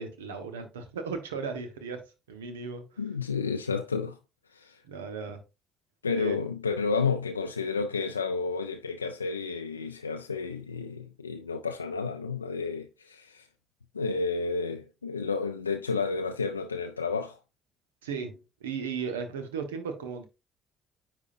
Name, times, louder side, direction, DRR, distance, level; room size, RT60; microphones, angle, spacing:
voice 1, 0.0-3.0 4.9-5.4 6.1-6.3 18.0-20.2, right 5 dB, 80° right, 1.1 m, -36 dB
voice 2, 3.0-4.2 4.5-4.8 6.0-13.5 13.9-17.4, left 4 dB, 90° left, 0.3 m, -31 dB
9.7 x 3.7 x 2.6 m
figure-of-eight pair, 45°, 0 cm